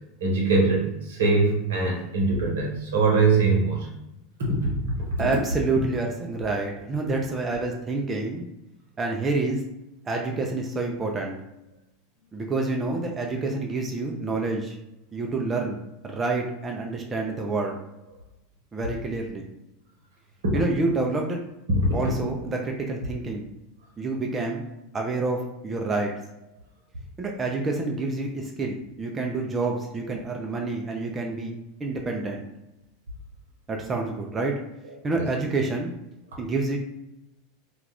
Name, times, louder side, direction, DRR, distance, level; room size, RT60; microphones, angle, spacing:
voice 1, 0.2-3.9 4.4-4.7 20.4-20.6 21.7-21.9 35.1-35.2, right 3 dB, 75° right, -1 dB, 0.9 m, -22 dB
voice 2, 5.2-8.5 9.0-9.6 10.1-11.4 12.3-14.8 15.1-15.8 16.0-17.8 18.7-19.4 20.5-21.4 21.9-23.5 24.0-24.6 24.9-26.1 27.2-31.5 31.8-32.4 33.7-34.5 35.0-35.9 36.4-36.8, right 3 dB, 25° right, 0 dB, 0.4 m, -28 dB
2.3 x 2.3 x 3.3 m, 0.89 s
hypercardioid pair, 85°, 0 cm